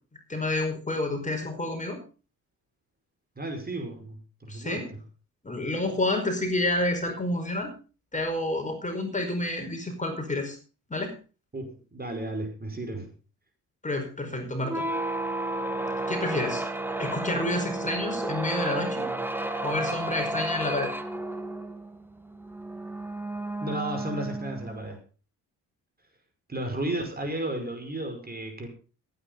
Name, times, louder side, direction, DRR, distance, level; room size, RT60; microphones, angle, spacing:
voice 1, 0.3-2.0 4.5-4.9 5.4-7.7 8.1-10.6 10.9-11.1 13.8-14.9 16.1-16.6 17.0-19.1 19.6-20.9, left 2 dB, 20° left, 4 dB, 5.0 m, -29 dB
voice 2, 3.4-4.9 11.5-13.1 23.6-25.0 26.5-28.7, right 1 dB, 25° right, 4 dB, 5.5 m, -33 dB
sound 1, 14.6-25.0, right 2 dB, 5° right, 1.9 m, -32 dB
15.0 x 9.7 x 5.3 m, 0.36 s
supercardioid pair, 75°, 36 cm